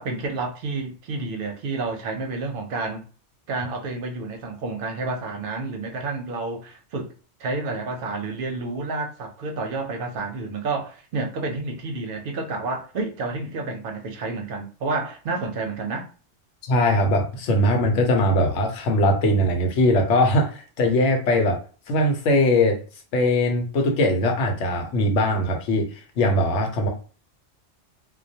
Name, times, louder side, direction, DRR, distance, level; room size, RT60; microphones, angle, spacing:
voice 1, 0.0-3.0 3.5-7.1 7.4-16.1, right 3 dB, 60° right, 0.7 m, -30 dB
voice 2, 16.6-21.6 21.9-22.8 23.1-25.9 26.2-26.9, left 1 dB, 80° left, 1.0 m, -20 dB
2.2 x 2.1 x 2.7 m
omnidirectional pair, 1.2 m